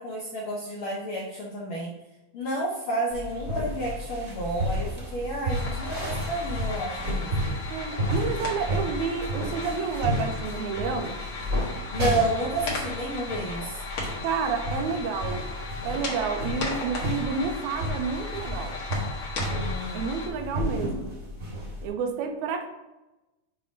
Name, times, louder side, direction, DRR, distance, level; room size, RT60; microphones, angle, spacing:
voice 1, 0.0-1.9 2.3-7.6 11.9-13.8 19.4-20.1, right 1 dB, 80° left, -3 dB, 1.1 m, -31 dB
sound 1, 3.1-21.9, equal, 30° right, 1.4 m, -32 dB
sound 2, 5.5-20.3, left 3 dB, 55° left, 1.9 m, -37 dB
voice 2, 7.7-11.2 14.2-15.5 15.8-18.8 19.9-21.1 21.8-22.7, right 5 dB, 80° right, 5 dB, 1.9 m, -30 dB
7.0 x 3.4 x 5.2 m, 1.0 s
omnidirectional pair, 3.5 m